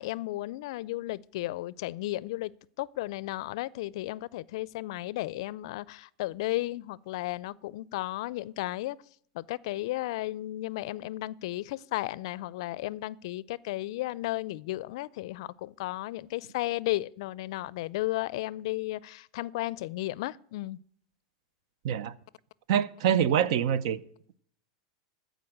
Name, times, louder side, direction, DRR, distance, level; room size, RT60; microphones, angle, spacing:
voice 1, 0.0-2.5 2.8-9.0 9.3-20.8, left 17 dB, 70° left, 0.4 m, -34 dB
voice 2, 21.8-22.2 22.7-24.0, right 9 dB, 70° right, 0.7 m, -25 dB
14.0 x 5.1 x 8.7 m
hypercardioid pair, 115°, 3 cm